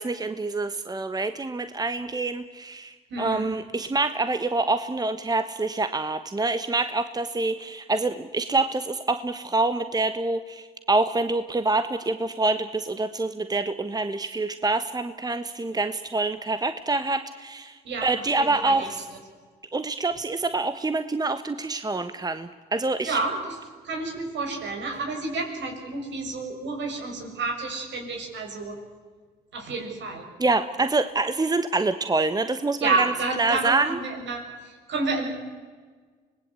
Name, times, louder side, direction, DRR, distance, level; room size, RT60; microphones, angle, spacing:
voice 1, 0.0-19.0 19.7-23.2 30.4-34.0, right 3 dB, 20° right, 11 dB, 1.2 m, -26 dB
voice 2, 3.1-3.5 17.8-18.1 18.4-18.9 23.0-23.6 23.8-28.8 29.5-30.3 32.8-35.3, right 3 dB, 65° right, 3 dB, 6.5 m, -30 dB
25.0 x 19.0 x 8.4 m, 1.5 s
supercardioid pair, 65°, 20 cm